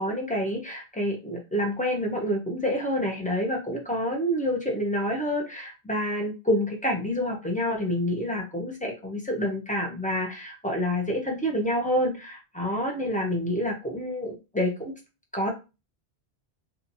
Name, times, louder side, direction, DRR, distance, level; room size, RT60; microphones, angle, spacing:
voice 1, 0.0-14.9 15.3-15.5, equal, 10° left, 0 dB, 0.5 m, -28 dB
2.8 x 2.4 x 2.7 m, 0.28 s
omnidirectional pair, 1.1 m